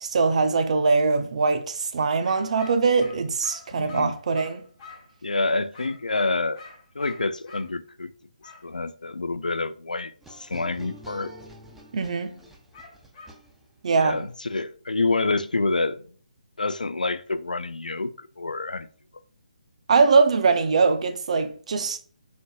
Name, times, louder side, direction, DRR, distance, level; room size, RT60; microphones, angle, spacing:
voice 1, 0.0-4.6 11.9-12.4 13.8-14.2 19.9-22.0, right 4 dB, 55° right, 0.5 m, -22 dB
sound 1, 2.2-5.1 5.7-7.7 8.4-8.6 12.7-13.4, left 4 dB, 30° left, 1.5 m, -46 dB
voice 2, 3.8-4.2 5.2-6.6 7.0-8.1 8.6-11.3 13.9-16.0 16.6-18.9, left 3 dB, 90° left, 0.4 m, -27 dB
sound 2, 10.2-13.9, equal, 5° right, 0.5 m, -46 dB
4.3 x 3.7 x 2.3 m
figure-of-eight pair, 145°, 4 cm